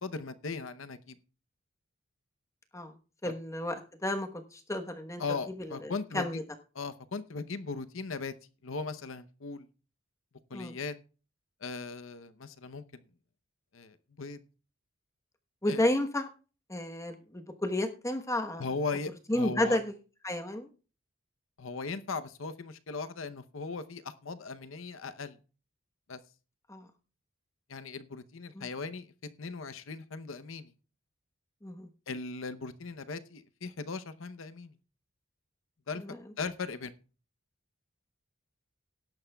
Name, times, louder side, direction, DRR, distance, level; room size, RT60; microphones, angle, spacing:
voice 1, 0.0-1.2 3.2-3.3 5.2-6.4 6.7-8.3 8.6-9.7 10.5-10.9 11.6-13.0 13.7-14.4 15.7-15.8 18.6-19.8 21.6-25.4 26.1-26.2 27.7-29.1 29.4-30.7 32.1-34.8 35.9-36.0 36.4-36.9, left 4 dB, 75° left, 11 dB, 0.8 m, -38 dB
voice 2, 3.2-5.2 5.6-6.4 10.5-10.7 15.6-16.3 16.7-18.6 19.3-19.9 20.2-20.7 26.7-26.9 28.5-28.7 31.6-31.9 36.0-36.2, left 1 dB, 15° left, 5 dB, 1.1 m, -32 dB
18.5 x 10.5 x 2.3 m, 0.36 s
head